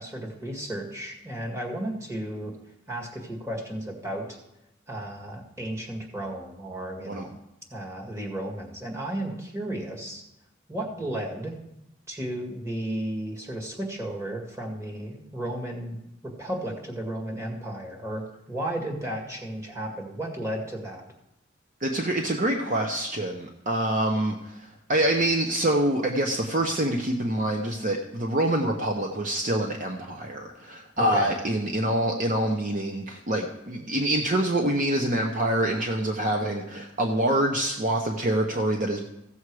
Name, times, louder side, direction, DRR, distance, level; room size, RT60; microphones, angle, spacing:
voice 1, 0.0-2.5 2.9-4.4 4.9-7.3 7.7-10.2 10.7-11.5 12.1-16.0 16.2-21.1 31.0-31.3, right 1 dB, 15° right, 0 dB, 2.0 m, -34 dB
voice 2, 21.8-39.1, right 1 dB, 45° right, 2 dB, 0.9 m, -26 dB
15.5 x 7.2 x 4.8 m, 0.87 s
head